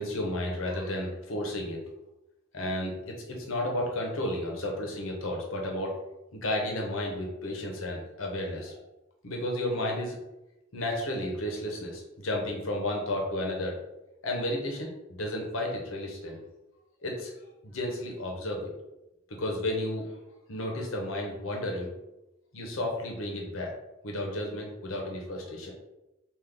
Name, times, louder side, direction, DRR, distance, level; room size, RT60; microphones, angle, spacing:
voice 1, 0.0-1.8 2.5-6.0 6.3-8.8 9.2-10.2 10.7-13.8 14.2-14.9 15.2-16.4 17.0-17.3 17.6-18.7 19.4-20.1 20.5-21.9 22.5-23.7 24.0-25.7, left 1 dB, 75° left, 0 dB, 0.9 m, -32 dB
3.4 x 2.5 x 3.8 m, 0.96 s
head